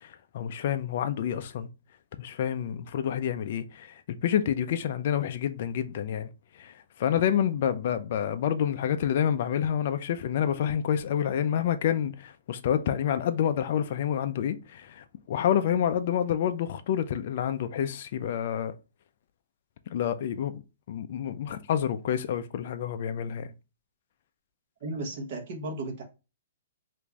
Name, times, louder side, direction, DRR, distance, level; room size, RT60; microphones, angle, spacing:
voice 1, 0.0-1.7 2.2-6.3 6.6-6.7 7.0-18.7 19.9-20.6 20.9-23.5, left 9 dB, 40° left, 0.3 m, -28 dB
voice 2, 24.8-26.0, right 2 dB, 40° right, 1.0 m, -34 dB
3.0 x 2.5 x 3.4 m
hypercardioid pair, 175°, 0 cm